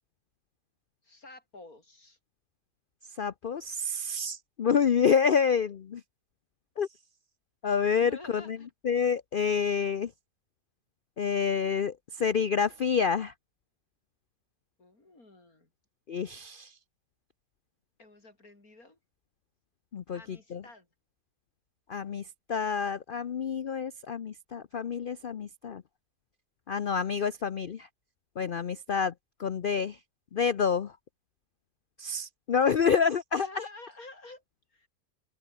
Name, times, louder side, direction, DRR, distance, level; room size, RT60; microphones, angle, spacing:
voice 1, 1.0-2.2 8.0-8.7 14.8-15.7 18.0-19.0 20.1-20.9 33.3-34.4 34.7-34.9, left 2 dB, 55° left, 6.1 m, -50 dB
voice 2, 3.2-6.0 6.8-6.9 7.6-8.6 8.8-10.1 11.2-13.3 16.1-16.7 19.9-20.6 21.9-22.2 22.5-25.8 26.7-27.9 28.4-29.1 29.4-30.0 30.3-30.9 32.0-33.7, left 6 dB, 80° left, 0.4 m, -28 dB
omnidirectional pair, 1.8 m